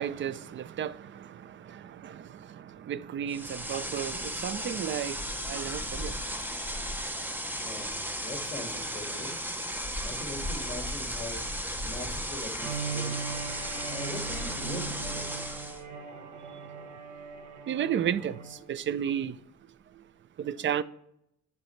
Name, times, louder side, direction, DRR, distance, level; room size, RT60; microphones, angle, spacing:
voice 1, 0.0-6.2 17.7-19.4 19.9-20.0 20.4-20.8, right 9 dB, 40° right, 0.4 m, -33 dB
sound 1, 3.3-15.8, equal, 5° right, 0.8 m, -35 dB
voice 2, 7.6-9.3 10.0-11.4 11.8-13.2 13.8-15.3, left 1 dB, 15° left, 1.9 m, -41 dB
Bowed string instrument, 12.6-18.6, right 5 dB, 90° right, 1.2 m, -39 dB
10.5 x 5.4 x 3.2 m
cardioid pair, 110°, 29 cm